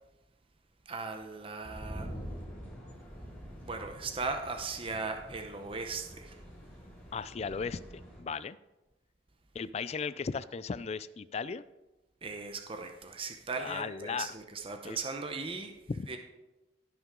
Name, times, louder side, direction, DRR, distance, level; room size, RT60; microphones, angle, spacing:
voice 1, 0.9-2.1 3.6-6.3 12.2-15.7 16.1-16.2, right 4 dB, 30° right, 5 dB, 0.8 m, -38 dB
sound 1, 1.6-8.2, equal, 10° left, 3.4 m, -46 dB
voice 2, 7.1-8.6 9.5-11.6 13.6-14.4 14.8-15.0 15.9-16.1, left 5 dB, 35° left, 17 dB, 0.3 m, -36 dB
17.5 x 5.9 x 3.7 m, 1.0 s
head